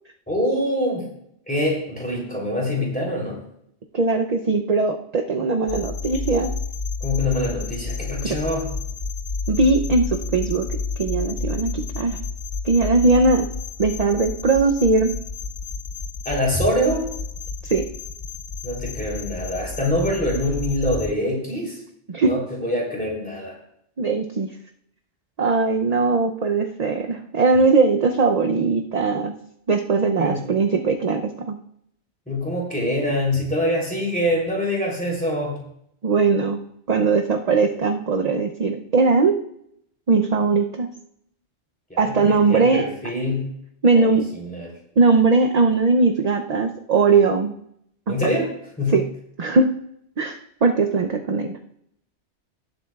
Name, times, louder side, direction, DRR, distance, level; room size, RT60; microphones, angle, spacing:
voice 1, 0.3-1.1 1.5-3.4 7.0-8.7 16.2-17.0 18.6-21.8 22.2-23.6 30.2-30.5 32.3-35.6 41.9-43.5 43.9-44.7 48.1-48.5 48.8-49.0, left 1 dB, 5° left, -3 dB, 3.3 m, -24 dB
voice 2, 3.9-6.5 8.2-8.4 9.5-10.7 11.0-12.2 12.6-13.5 13.8-15.1 17.6-17.9 22.1-22.3 24.0-24.5 25.4-29.3 29.7-31.6 36.0-36.6 36.9-39.4 40.1-40.9 42.0-42.8 43.8-44.3 45.0-47.5 48.9-49.0 49.4-49.7 50.2-51.5, right 4 dB, 45° right, 5 dB, 0.6 m, -19 dB
sound 1, 5.7-21.1, left 4 dB, 55° left, 0.3 m, -31 dB
18.5 x 7.8 x 2.4 m, 0.73 s
omnidirectional pair, 1.2 m